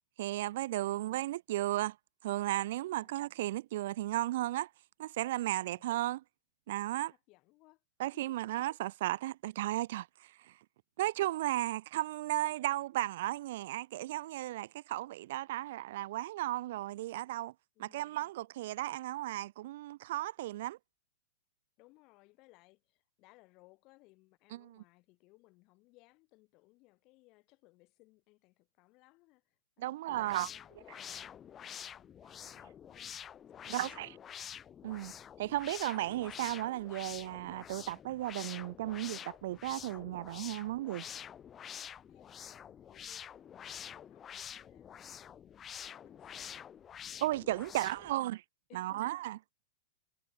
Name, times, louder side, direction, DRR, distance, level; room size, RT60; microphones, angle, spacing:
voice 1, 0.2-2.0 2.2-4.7 5.0-6.2 6.7-7.1 8.0-10.5 11.0-17.5 17.8-20.8 24.5-24.8 29.8-30.5 33.7-34.1 34.8-35.1 35.4-41.1 47.2-48.4 48.7-49.4, right 15 dB, 65° right, 0.3 m, -35 dB
voice 2, 0.7-1.2 3.0-3.4 5.6-5.9 7.1-7.8 8.1-8.3 17.7-18.3 21.8-33.2 33.5-34.3 42.1-45.5 45.8-46.7 47.6-48.3 48.7-49.1, left 23 dB, 45° left, 6.6 m, -65 dB
sound 1, 30.1-48.1, left 9 dB, 25° left, 2.5 m, -47 dB
hypercardioid pair, 120°, 0 cm